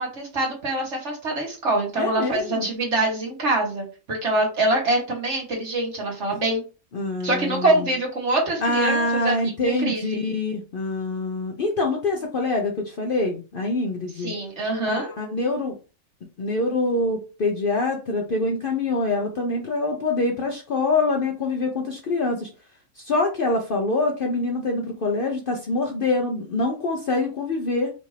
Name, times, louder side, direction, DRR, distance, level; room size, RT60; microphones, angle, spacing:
voice 1, 0.0-6.6 7.2-9.3 9.7-10.2 14.2-15.1, right 2 dB, 55° right, -1 dB, 1.8 m, -24 dB
voice 2, 2.0-2.7 6.9-7.9 8.6-14.3 14.9-15.8 16.4-22.5 23.0-27.9, left 2 dB, 55° left, 2 dB, 0.7 m, -25 dB
5.1 x 2.6 x 3.2 m, 0.33 s
omnidirectional pair, 1.4 m